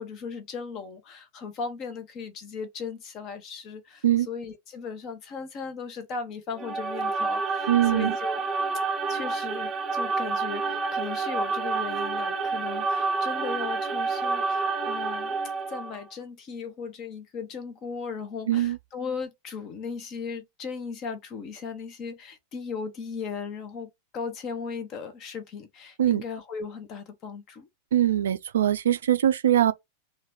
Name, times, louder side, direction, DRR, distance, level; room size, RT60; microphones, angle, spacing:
voice 1, 0.0-8.4 8.7-15.4 15.7-27.7, left 5 dB, 35° left, 0.6 m, -37 dB
sound 1, 6.5-16.0, right 4 dB, 20° right, 0.7 m, -29 dB
voice 2, 7.7-8.1 18.5-18.8 26.0-26.2 27.9-29.7, right 11 dB, 65° right, 0.3 m, -22 dB
2.8 x 2.2 x 2.9 m
figure-of-eight pair, 90°, 0 cm